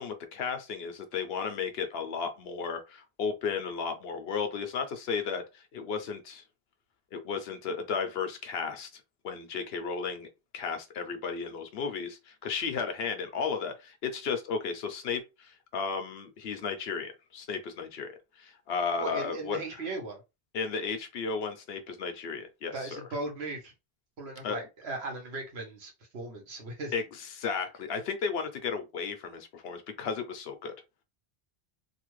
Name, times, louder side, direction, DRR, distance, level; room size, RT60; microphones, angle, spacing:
voice 1, 0.0-6.4 7.1-10.3 10.5-19.6 20.5-23.0 24.4-24.6 26.9-30.7, left 5 dB, 75° left, 0.9 m, -34 dB
voice 2, 19.0-20.2 22.7-23.7 24.2-26.9, right 2 dB, 80° right, 1.3 m, -37 dB
2.8 x 2.4 x 3.1 m
omnidirectional pair, 1.1 m